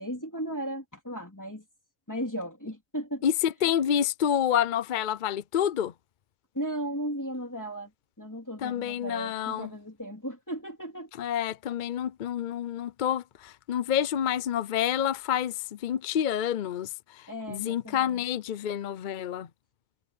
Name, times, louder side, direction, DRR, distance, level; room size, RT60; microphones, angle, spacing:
voice 1, 0.0-1.6 2.1-3.2 6.5-7.9 8.2-11.1 17.3-18.2, right 1 dB, 15° left, 3.5 m, -36 dB
voice 2, 3.2-5.9 8.6-9.7 11.2-15.6 15.8-19.5, left 9 dB, 55° left, 0.5 m, -28 dB
omnidirectional pair, 1.4 m